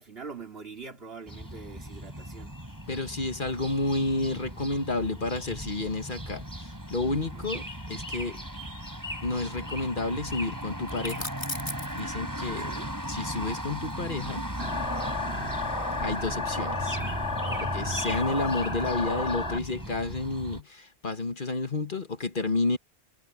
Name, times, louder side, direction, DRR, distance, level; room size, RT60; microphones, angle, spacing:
voice 1, 0.0-2.6 7.3-7.6 12.4-12.9 17.4-17.7, right 4 dB, 60° right, 3.1 m, -44 dB
sound 1, 1.3-20.6, equal, 15° right, 5.0 m, -37 dB
voice 2, 2.9-6.4 6.9-7.6 7.9-8.4 9.2-11.2 12.0-12.7 13.1-14.4 16.0-17.0 17.7-22.8, left 2 dB, 50° left, 1.8 m, -30 dB
sound 2, 10.9-12.0 13.8-15.4, left 1 dB, 25° left, 2.6 m, -38 dB
sound 3, 14.6-19.6, left 3 dB, 80° left, 4.1 m, -32 dB
omnidirectional pair, 1.1 m